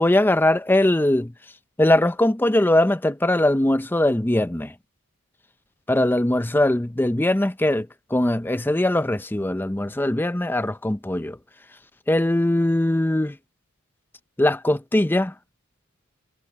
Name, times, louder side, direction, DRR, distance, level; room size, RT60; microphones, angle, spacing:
voice 1, 0.0-1.3 1.8-4.7 5.9-11.4 12.1-13.4 14.4-15.3, left 1 dB, 10° left, 0.5 m, -21 dB
head